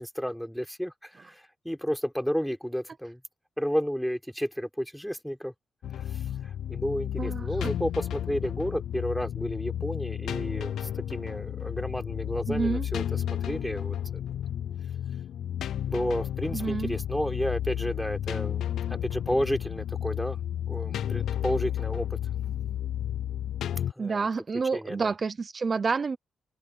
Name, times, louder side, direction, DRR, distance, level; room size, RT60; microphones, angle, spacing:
voice 1, 0.0-3.2 3.6-5.5 6.0-14.4 15.9-20.4 20.7-22.2 23.9-24.3 24.7-25.1, equal, ahead, 3.7 m, -32 dB
sound 1, 5.8-23.9, left 10 dB, 85° left, 0.4 m, -32 dB
voice 2, 7.2-7.7 12.5-12.8 16.5-17.0 24.0-26.2, right 4 dB, 35° right, 0.6 m, -29 dB
open air
cardioid pair, 135°, 0 cm